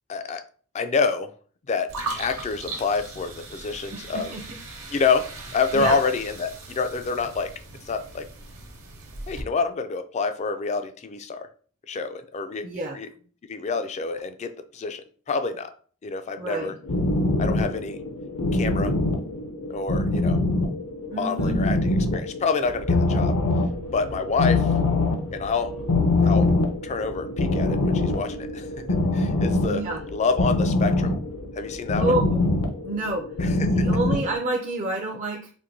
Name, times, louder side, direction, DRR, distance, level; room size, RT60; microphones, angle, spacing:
voice 1, 0.1-0.4 0.7-1.3 1.7-1.9 2.2-4.3 4.9-7.5 7.9-8.3 9.3-11.5 11.9-12.6 12.9-13.1 13.5-15.7 16.0-16.8 17.4-18.0 18.5-18.9 19.7-20.4 21.1-23.4 23.9-24.7 25.3-25.7 26.2-26.5 26.8-28.7 29.1-29.8 30.1-31.1 31.6-32.1 33.4-33.7, left 4 dB, 30° left, 9 dB, 0.3 m, -27 dB
sound 1, 1.9-9.4, right 3 dB, 65° right, 0.9 m, -38 dB
voice 2, 3.9-4.4 5.7-6.0 12.6-13.0 16.4-16.7 21.1-21.6 29.5-30.0 32.0-32.5 32.8-33.2 33.7-35.5, right 2 dB, 35° right, 0 dB, 0.4 m, -28 dB
sound 2, 16.8-34.3, left 2 dB, 70° left, 0.6 m, -24 dB
4.4 x 2.5 x 2.6 m, 0.43 s
head